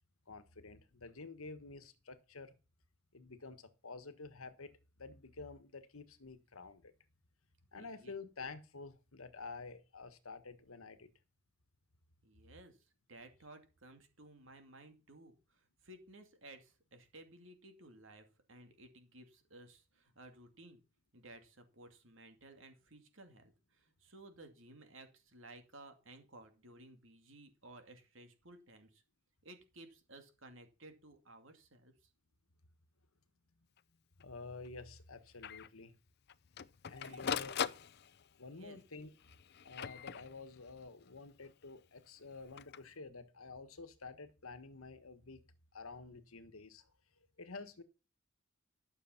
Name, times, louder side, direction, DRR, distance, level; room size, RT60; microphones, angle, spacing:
voice 1, 0.3-2.5 3.1-6.9 7.7-11.1 34.2-35.9 36.9-37.5 38.4-39.1 39.6-45.4 45.7-46.9 47.4-47.8, left 3 dB, 80° left, 1.4 m, -50 dB
voice 2, 7.8-8.1 12.2-20.8 21.1-29.0 29.4-32.1 37.0-37.3 38.5-38.8, right 2 dB, 65° right, 2.5 m, -57 dB
Printer, 33.8-33.9 34.2-34.3 34.6-34.7 35.4-35.7 36.3-38.4 39.2-40.7 42.4-42.8, left 7 dB, 50° left, 0.5 m, -41 dB
12.5 x 6.7 x 5.8 m
head